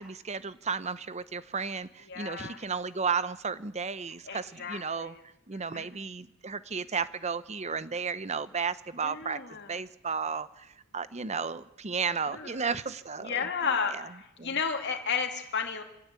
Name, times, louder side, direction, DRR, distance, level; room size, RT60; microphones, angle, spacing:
voice 1, 0.0-5.1 5.5-9.4 9.7-13.5 13.9-14.1 14.4-14.6, right 5 dB, 35° right, 15 dB, 0.9 m, -33 dB
voice 2, 2.1-2.6 4.3-5.2 5.5-5.9 9.0-9.7 12.2-12.6 13.2-14.1 14.4-15.8, left 6 dB, 55° left, 5 dB, 2.8 m, -33 dB
26.0 x 17.5 x 8.3 m, 0.85 s
head